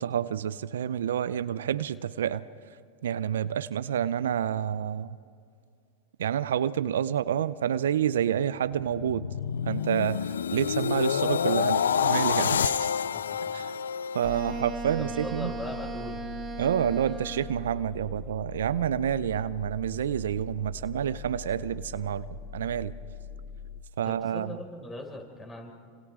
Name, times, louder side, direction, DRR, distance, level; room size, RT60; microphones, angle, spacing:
voice 1, 0.0-2.4 3.0-5.2 6.2-9.3 9.7-12.9 13.5-13.7 14.1-15.5 16.6-22.9 24.0-24.6, right 9 dB, 80° right, 15 dB, 0.6 m, -28 dB
sound 1, 8.6-14.9 15.3-15.6, left 8 dB, 85° left, 0.4 m, -28 dB
sound 2, 14.2-23.8, left 6 dB, 45° left, 0.7 m, -42 dB
Wind instrument woodwind instrument, 14.2-17.7, right 4 dB, 25° right, 2.7 m, -37 dB
voice 2, 15.0-16.3 16.6-16.7 24.0-25.7, left 2 dB, 20° left, 1 dB, 5.5 m, -40 dB
29.5 x 26.5 x 3.7 m, 2.3 s
hypercardioid pair, 95°, 0 cm